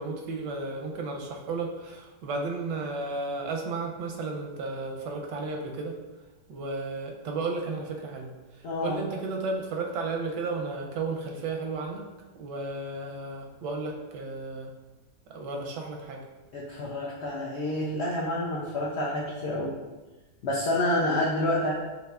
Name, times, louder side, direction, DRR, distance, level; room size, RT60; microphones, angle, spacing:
voice 1, 0.0-6.0 6.5-12.1 12.4-14.7 15.3-16.2, right 3 dB, 85° right, 1 dB, 1.2 m, -33 dB
voice 2, 8.6-9.0 16.5-19.8 20.4-21.7, left 1 dB, 85° left, -4 dB, 0.5 m, -28 dB
5.6 x 2.7 x 2.3 m, 1.2 s
omnidirectional pair, 1.9 m